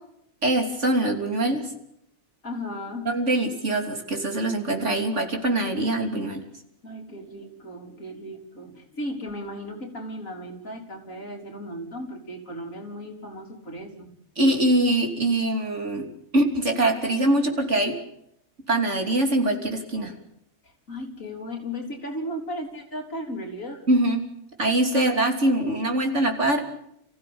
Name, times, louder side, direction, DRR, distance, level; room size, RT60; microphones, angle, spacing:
voice 1, 0.4-1.7 3.1-6.4 14.4-16.1 16.3-18.0 18.7-20.1 23.9-24.2 24.6-26.6, right 1 dB, 60° right, 4 dB, 3.6 m, -23 dB
voice 2, 2.4-3.1 6.8-14.1 20.6-23.8, equal, 70° left, 2 dB, 4.1 m, -36 dB
28.5 x 15.5 x 8.7 m, 0.77 s
omnidirectional pair, 1.4 m